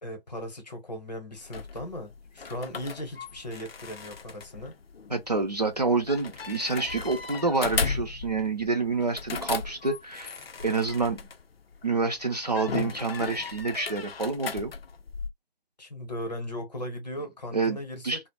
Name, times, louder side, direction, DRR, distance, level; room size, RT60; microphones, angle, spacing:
voice 1, 0.0-4.7 15.8-18.3, equal, 45° left, 0.8 m, -37 dB
sound 1, 1.4-11.9 12.5-15.3, left 5 dB, 70° left, 0.5 m, -36 dB
voice 2, 5.1-10.4 10.6-11.2 11.8-14.7 17.5-17.8 18.0-18.2, right 3 dB, 45° right, 0.4 m, -27 dB
2.1 x 2.0 x 2.9 m
figure-of-eight pair, 160°, 31 cm